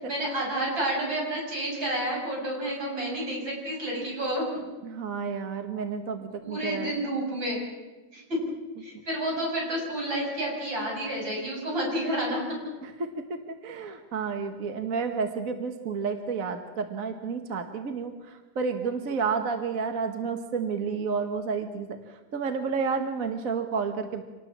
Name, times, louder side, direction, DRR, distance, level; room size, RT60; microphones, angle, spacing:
voice 1, 0.1-4.4 6.4-7.6 8.1-8.4 8.8-12.4, right 1 dB, 80° right, -1 dB, 7.6 m, -30 dB
voice 2, 4.8-6.9 12.8-21.9 22.3-24.2, right 5 dB, 45° right, 6 dB, 1.7 m, -31 dB
27.0 x 18.5 x 7.4 m, 1.2 s
omnidirectional pair, 2.0 m